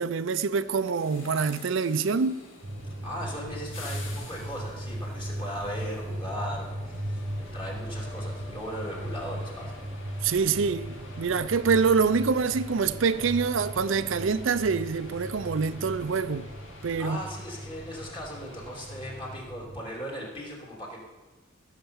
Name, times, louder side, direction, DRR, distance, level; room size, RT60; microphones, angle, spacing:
voice 1, 0.0-2.4 10.2-16.5 16.8-17.2, right 5 dB, 70° right, 0.5 m, -25 dB
sound 1, 0.5-19.4, left 2 dB, 80° left, 2.3 m, -48 dB
sound 2, 2.6-19.8, equal, 35° right, 1.0 m, -38 dB
voice 2, 3.0-9.8 17.0-21.0, equal, 25° left, 3.2 m, -38 dB
16.0 x 6.7 x 7.2 m
head